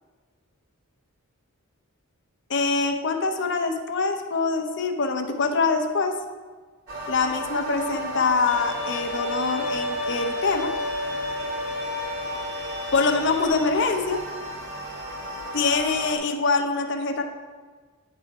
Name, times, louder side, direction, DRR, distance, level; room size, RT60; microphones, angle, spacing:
voice 1, 2.5-6.2 7.1-10.7 12.9-14.2 15.5-17.2, left 4 dB, 55° left, 5 dB, 0.6 m, -24 dB
sound 1, 6.9-16.2, right 1 dB, 45° right, 1.7 m, -34 dB
Bowed string instrument, 8.5-13.5, left 3 dB, 70° left, 1.2 m, -32 dB
9.9 x 3.3 x 4.7 m, 1.5 s
head